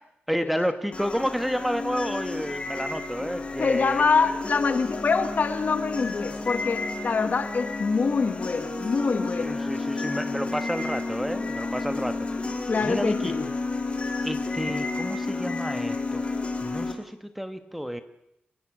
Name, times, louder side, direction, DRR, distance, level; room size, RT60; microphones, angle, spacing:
voice 1, 0.3-4.1 9.4-12.4 12.8-13.4 14.2-18.0, equal, ahead, 9 dB, 1.3 m, -31 dB
sound 1, 0.9-16.9, left 3 dB, 35° left, 3.1 m, -31 dB
voice 2, 3.6-9.6 12.7-13.5, left 4 dB, 50° left, 10 dB, 1.7 m, -25 dB
29.0 x 17.0 x 6.2 m, 0.80 s
wide cardioid pair, 115°, 4 cm